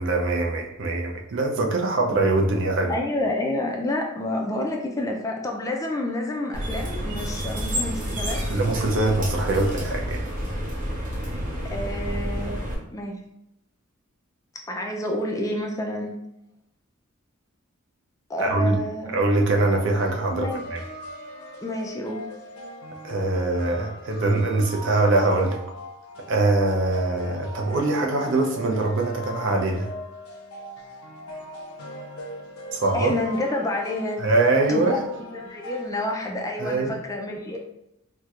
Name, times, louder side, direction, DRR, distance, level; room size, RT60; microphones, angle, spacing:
voice 1, 0.0-3.0 8.5-10.2 18.4-18.8 19.1-20.8 23.0-25.6 26.3-29.9 32.7-33.1 34.2-35.0 36.6-37.0, right 2 dB, 60° right, 2 dB, 0.5 m, -23 dB
voice 2, 2.9-8.4 11.7-12.5 12.9-13.2 14.5-16.2 18.3-19.1 20.3-20.6 21.6-22.3 32.9-34.2 34.7-37.6, left 1 dB, 15° left, 1 dB, 0.3 m, -29 dB
sound 1, 6.5-12.7, equal, 40° right, 0.8 m, -29 dB
sound 2, 19.5-35.9, equal, 85° left, 0.5 m, -40 dB
4.3 x 2.1 x 2.4 m, 0.84 s
head